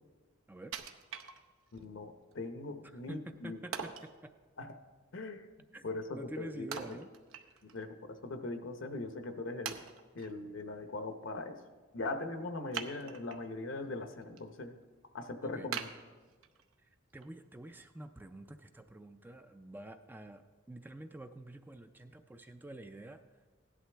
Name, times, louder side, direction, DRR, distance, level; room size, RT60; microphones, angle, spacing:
Wood, 0.7-1.8 2.3-2.4 3.7-4.1 6.7-7.8 8.2-8.3 8.9-9.0 9.7-10.3 12.7-13.5 14.0-14.4 14.8-14.9 15.7-16.7 17.2-17.3, right 7 dB, 80° right, 0.8 m, -42 dB
voice 1, 1.7-3.6 4.6-4.7 5.1-5.5 5.8-7.0 7.6-9.8 10.1-11.6 11.9-14.8 15.1-15.9, left 2 dB, 70° left, 7 dB, 0.9 m, -40 dB
voice 2, 2.8-4.3 5.7-7.1 7.5-7.6 15.4-15.7 16.8-23.2, right 1 dB, 10° right, 8 dB, 0.4 m, -48 dB
16.5 x 11.0 x 3.4 m, 1.4 s
head